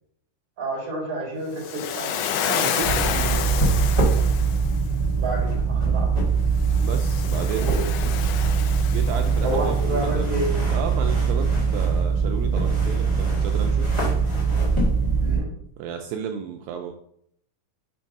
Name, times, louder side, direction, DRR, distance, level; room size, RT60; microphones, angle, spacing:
voice 1, 0.6-2.1 5.1-6.1 7.6-7.9 9.4-10.5 15.2-15.5, right 2 dB, 35° right, -2 dB, 2.8 m, -29 dB
Waves surf, 1.6-4.8 6.6-9.7, left 8 dB, 85° left, 1.8 m, -29 dB
voice 2, 2.4-3.5 6.8-7.9 8.9-10.3 10.7-13.9 15.8-16.9, right 7 dB, 85° right, 4 dB, 2.2 m, -33 dB
sound 1, 2.8-15.4, right 4 dB, 10° left, 1.5 m, -22 dB
6.6 x 3.5 x 5.2 m, 0.71 s
omnidirectional pair, 4.1 m